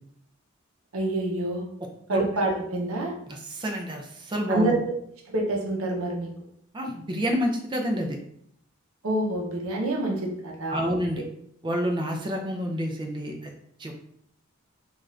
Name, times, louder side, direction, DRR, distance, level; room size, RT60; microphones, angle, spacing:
voice 1, 0.9-1.6 2.1-3.1 4.5-4.9 5.3-6.3 9.0-11.2, right 2 dB, 75° right, -1 dB, 0.6 m, -27 dB
voice 2, 3.3-4.8 6.7-8.2 10.7-11.2 11.6-13.5 13.8-13.9, equal, 20° right, 2 dB, 0.4 m, -28 dB
2.5 x 2.3 x 3.1 m, 0.72 s
head